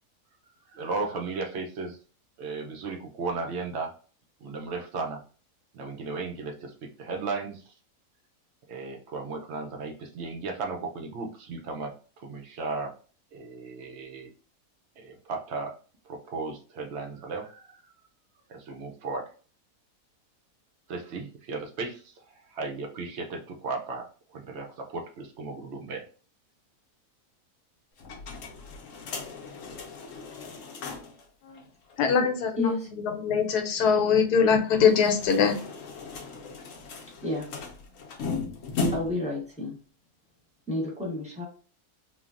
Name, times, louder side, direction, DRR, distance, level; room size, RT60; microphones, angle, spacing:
voice 1, 0.7-2.0 2.4-3.9 4.4-5.2 5.7-7.7 8.7-11.9 12.2-12.9 13.3-14.3 15.0-15.7 16.0-17.9 18.5-19.3 20.9-24.1 24.3-26.0, right 3 dB, 70° right, 3 dB, 0.6 m, -35 dB
sound 1, 28.0-31.2 31.6-31.7 31.9-32.0 34.8-39.3, left 4 dB, 65° left, 0.9 m, -36 dB
voice 2, 32.0-35.6, left 6 dB, 85° left, 5 dB, 1.2 m, -23 dB
voice 3, 32.6-32.9 37.2-37.5 38.9-39.8 40.7-41.4, left 2 dB, 5° right, -4 dB, 0.9 m, -30 dB
3.2 x 2.2 x 2.4 m, 0.39 s
omnidirectional pair, 1.6 m